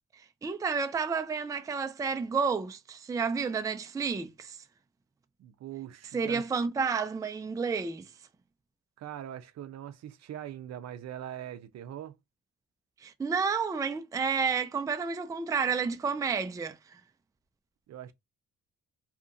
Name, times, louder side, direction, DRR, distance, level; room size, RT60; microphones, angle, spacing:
voice 1, 0.4-4.6 6.1-8.1 13.0-17.0, right 5 dB, 10° right, 0.4 m, -30 dB
voice 2, 5.4-6.4 9.0-12.2 17.9-18.1, right 11 dB, 60° right, 0.5 m, -42 dB
2.8 x 2.4 x 2.5 m
cardioid pair, 90°, 30 cm